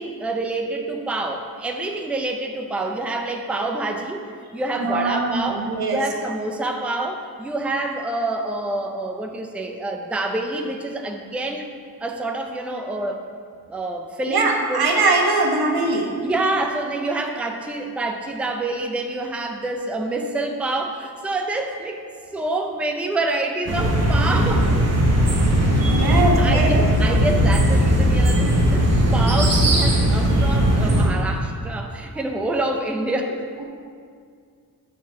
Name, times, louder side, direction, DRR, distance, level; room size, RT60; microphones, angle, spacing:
voice 1, 0.0-4.3 4.5-11.7 12.0-13.2 13.7-14.9 16.2-22.0 22.3-24.7 26.0-33.5, right 2 dB, 5° right, 3 dB, 0.4 m, -27 dB
voice 2, 4.8-6.0 14.3-16.1 25.9-26.8, right 2 dB, 90° right, 0 dB, 1.2 m, -21 dB
sound 1, 23.7-31.1, equal, 45° right, 1.2 m, -18 dB
8.7 x 4.1 x 5.7 m, 2.2 s
wide cardioid pair, 155°, 37 cm